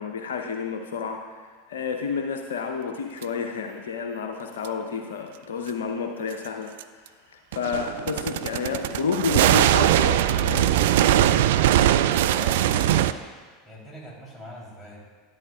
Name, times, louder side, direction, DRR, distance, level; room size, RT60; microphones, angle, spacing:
voice 1, 0.0-1.4 1.7-6.7 7.0-10.7, left 6 dB, 75° left, 4 dB, 0.6 m, -30 dB
sound 1, 3.2-3.3 4.6-4.7 6.8-6.9 7.5-13.1, right 12 dB, 65° right, 0.3 m, -21 dB
voice 2, 12.0-13.1 13.6-15.0, left 1 dB, 10° left, -4 dB, 3.2 m, -41 dB
12.0 x 11.0 x 2.3 m, 1.5 s
figure-of-eight pair, 80°, 0 cm